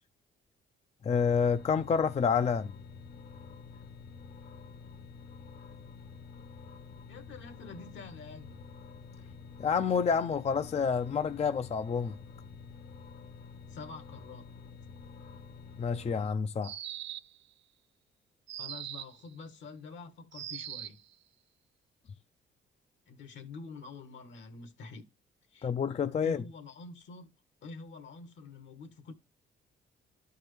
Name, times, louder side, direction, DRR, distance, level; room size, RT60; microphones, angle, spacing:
voice 1, 1.0-2.7 9.6-12.1 15.8-16.7 25.6-26.4, left 6 dB, 35° left, 0.5 m, -28 dB
sound 1, 1.2-16.3, left 5 dB, 55° left, 1.1 m, -49 dB
voice 2, 7.1-8.7 13.7-14.4 18.6-21.0 23.1-25.1 25.5-25.7 26.2-27.3 27.6-29.1, left 4 dB, 70° left, 1.5 m, -47 dB
sound 2, 16.6-17.4 18.5-19.2 20.3-21.0, right 11 dB, 65° right, 0.5 m, -41 dB
12.5 x 4.6 x 3.2 m
cardioid pair, 90°, 20 cm